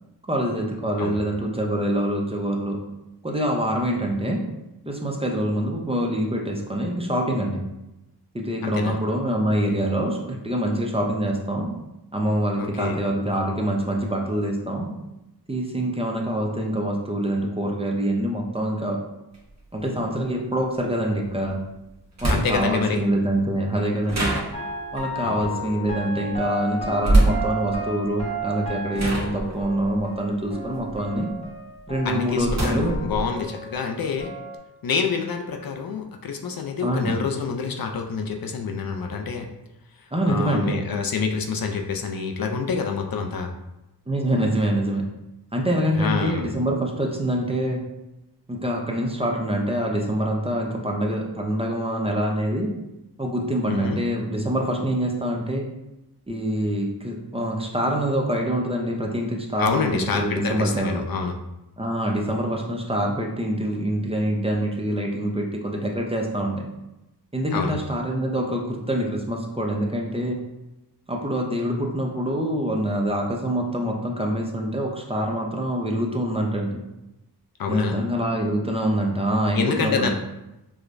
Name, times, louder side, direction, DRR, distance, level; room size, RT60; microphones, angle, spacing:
voice 1, 0.3-2.8 3.2-4.4 4.9-7.6 8.3-11.7 12.1-14.9 15.5-19.0 19.7-21.6 22.2-24.3 24.9-31.3 31.9-33.0 36.8-37.2 40.1-40.8 44.1-45.0 45.5-47.8 48.5-52.7 53.2-55.7 56.3-61.0 61.8-66.7 67.3-70.4 71.1-76.8 77.7-80.1, right 1 dB, 15° right, 0 dB, 0.5 m, -25 dB
voice 2, 8.6-9.0 12.6-13.0 22.3-23.0 25.2-25.5 32.0-34.3 34.8-39.5 40.0-43.5 45.9-46.5 53.7-54.0 59.6-61.4 67.5-67.8 77.6-78.0 79.5-80.1, left 5 dB, 60° left, 3 dB, 0.5 m, -27 dB
sound 1, 19.3-19.4 21.5-21.6 22.2-22.8 24.1-24.9 27.0-27.5 28.4-28.6 28.9-31.3 31.8-33.3, right 2 dB, 40° right, 1.0 m, -24 dB
sound 2, 24.5-32.5 32.8-34.6, right 2 dB, 15° left, 1.0 m, -34 dB
4.8 x 2.2 x 2.5 m, 0.94 s
cardioid pair, 60°, 41 cm